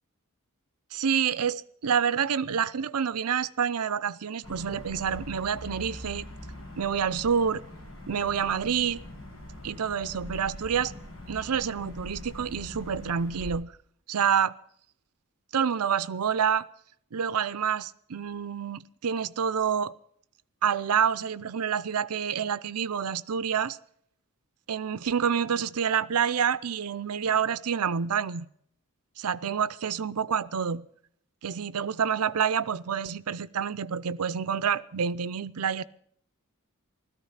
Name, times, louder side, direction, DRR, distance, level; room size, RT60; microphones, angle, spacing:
voice 1, 0.9-6.3 6.8-7.6 8.1-9.0 9.6-10.9 11.3-13.7 14.1-14.5 15.5-16.7 17.1-19.9 20.6-23.8 24.7-28.5 29.2-30.9 31.4-35.8, right 7 dB, 85° right, 0.6 m, -28 dB
sound 1, 4.4-13.5, left 1 dB, 65° left, 7.7 m, -43 dB
16.5 x 13.5 x 5.7 m
head